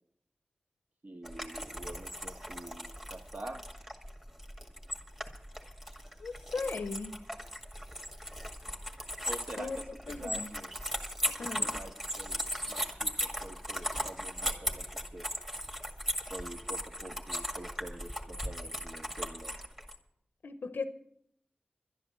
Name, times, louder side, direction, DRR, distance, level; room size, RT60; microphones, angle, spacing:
voice 1, 1.0-3.6 9.2-10.7 11.2-14.9 15.1-15.3 16.3-19.6, right 1 dB, 55° right, 4 dB, 1.6 m, -46 dB
sound 1, 1.2-20.0, equal, 10° right, 1.9 m, -38 dB
voice 2, 6.2-7.1 9.6-9.8 10.1-10.5 11.4-11.8 20.4-20.8, left 4 dB, 90° left, 10 dB, 0.7 m, -37 dB
11.5 x 10.5 x 7.3 m, 0.73 s
wide cardioid pair, 55°, 3 cm